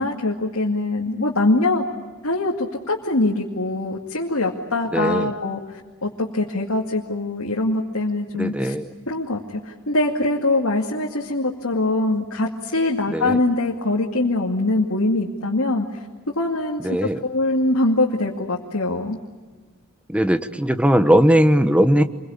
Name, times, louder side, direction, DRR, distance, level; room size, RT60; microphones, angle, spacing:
voice 1, 0.0-1.8 2.2-8.7 9.1-19.2, left 2 dB, 75° left, -1 dB, 2.4 m, -23 dB
voice 2, 4.9-5.3 8.3-8.9 13.1-13.4 16.8-17.2 20.1-22.0, equal, 5° right, 10 dB, 1.1 m, -18 dB
27.5 x 23.5 x 8.7 m, 1.4 s
head